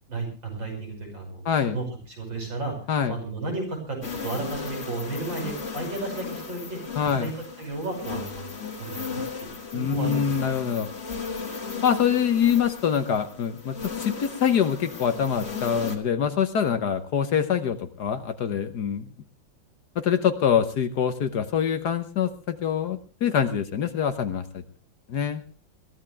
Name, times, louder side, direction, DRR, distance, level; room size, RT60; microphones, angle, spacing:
voice 1, 0.1-2.7 3.1-6.8 7.0-7.3 7.6-10.4, right 3 dB, 75° right, 2 dB, 6.7 m, -34 dB
voice 2, 1.4-1.8 2.9-3.1 7.0-7.3 9.7-10.9 11.8-19.1 20.0-24.6 25.1-25.4, left 8 dB, 60° left, 9 dB, 1.5 m, -25 dB
sound 1, 4.0-16.0, left 5 dB, 35° left, 2.0 m, -36 dB
22.0 x 14.5 x 3.4 m, 0.37 s
omnidirectional pair, 2.1 m